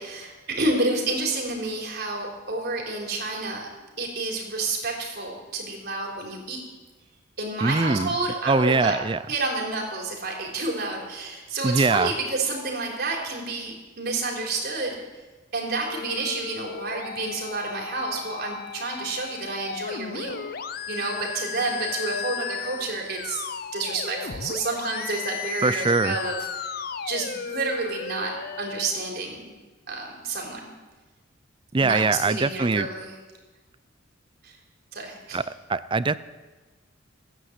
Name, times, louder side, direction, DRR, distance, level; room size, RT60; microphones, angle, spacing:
voice 1, 0.0-3.7 4.0-6.6 7.4-8.9 9.3-15.0 15.5-20.4 20.9-23.4 23.7-26.7 27.0-28.3 28.6-29.5 29.9-30.7 31.8-33.1 34.4-34.6 34.9-35.4, right 2 dB, 55° right, -1 dB, 4.0 m, -29 dB
voice 2, 7.6-8.1 8.5-9.2 11.6-12.1 25.6-26.2 31.7-32.9 35.3-35.4 35.7-36.2, right 3 dB, 25° right, 15 dB, 0.4 m, -22 dB
sound 1, 15.9-28.9, left 7 dB, 50° left, 0.6 m, -35 dB
15.5 x 10.0 x 8.1 m, 1.2 s
head